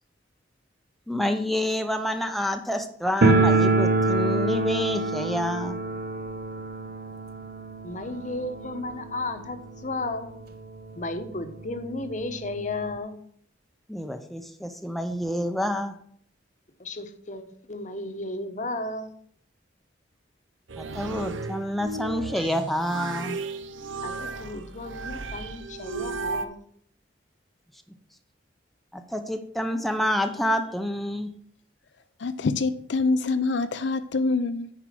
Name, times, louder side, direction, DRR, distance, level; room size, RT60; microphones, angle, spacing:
voice 1, 1.1-5.8 13.9-15.9 20.8-23.4 28.9-31.3, equal, ahead, 0.6 m, -28 dB
sound 1, 3.2-9.9 10.2-10.3 10.5-10.6 11.4-11.5 11.8-13.0, right 2 dB, 50° right, 0.6 m, -25 dB
voice 2, 7.8-10.3 11.0-13.2 16.8-19.1 24.0-26.6, left 2 dB, 40° left, 1.0 m, -34 dB
sound 2, 20.7-26.5, right 3 dB, 90° right, 0.7 m, -34 dB
voice 3, 32.2-34.7, left 3 dB, 65° left, 0.5 m, -25 dB
10.0 x 4.7 x 6.1 m
head